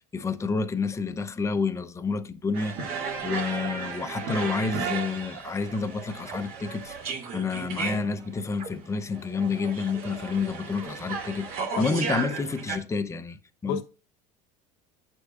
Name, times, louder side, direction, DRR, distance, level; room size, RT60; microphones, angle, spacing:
voice 1, 0.1-7.0 7.3-13.8, left 4 dB, 15° left, 0.7 m, -29 dB
sound 1, 2.5-12.8, right 5 dB, 60° right, 2.1 m, -34 dB
sound 2, 4.4-4.7 6.2-6.8 8.5-9.0, right 4 dB, 40° right, 1.5 m, -45 dB
voice 2, 11.8-12.2 13.6-13.8, left 7 dB, 75° left, 1.0 m, -32 dB
9.0 x 6.3 x 2.4 m
supercardioid pair, 105°, 17 cm